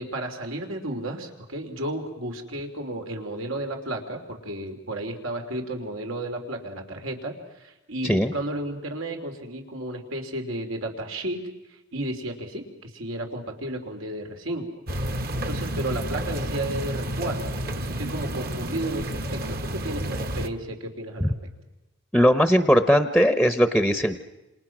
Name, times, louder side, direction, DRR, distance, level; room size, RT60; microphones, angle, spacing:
voice 1, 0.0-7.3 7.6-11.4 11.9-14.7 15.3-21.3, right 1 dB, 85° right, 3 dB, 3.5 m, -33 dB
sound 1, 14.9-20.5, right 1 dB, 45° right, 1.3 m, -30 dB
voice 2, 22.1-24.2, equal, ahead, 9 dB, 0.8 m, -19 dB
28.0 x 27.0 x 6.1 m, 1.0 s
head